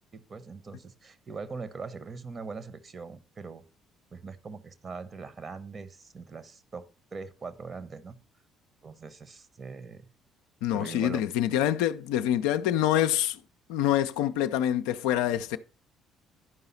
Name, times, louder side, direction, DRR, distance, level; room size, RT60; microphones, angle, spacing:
voice 1, 0.1-3.6 4.1-6.9 7.1-8.2 8.8-10.1 10.7-11.2, right 4 dB, 35° right, 1.0 m, -41 dB
voice 2, 10.6-13.4 13.7-15.6, left 11 dB, 65° left, 0.4 m, -26 dB
11.0 x 5.5 x 4.2 m
figure-of-eight pair, 50°, 0 cm